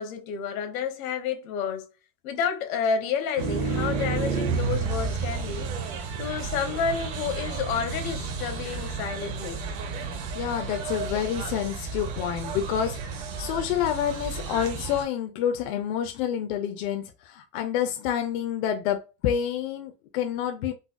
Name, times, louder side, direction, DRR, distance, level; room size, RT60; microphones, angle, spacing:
voice 1, 0.0-1.9 2.2-5.7 6.2-9.6, left 6 dB, 80° left, 1.0 m, -30 dB
sound 1, 3.4-15.0, right 5 dB, 45° right, 0.8 m, -31 dB
voice 2, 10.0-20.7, left 9 dB, 50° left, 0.5 m, -28 dB
4.0 x 2.1 x 2.4 m
supercardioid pair, 170°, 42 cm